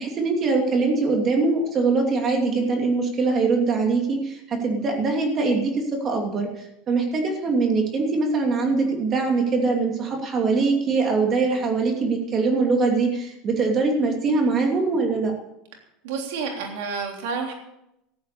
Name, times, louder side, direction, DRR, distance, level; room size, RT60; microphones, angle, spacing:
voice 1, 0.0-15.3, right 4 dB, 35° right, 2 dB, 2.7 m, -22 dB
voice 2, 16.0-17.5, right 5 dB, 85° right, 2 dB, 3.4 m, -29 dB
14.5 x 8.6 x 6.8 m, 0.85 s
supercardioid pair, 135°, 0 cm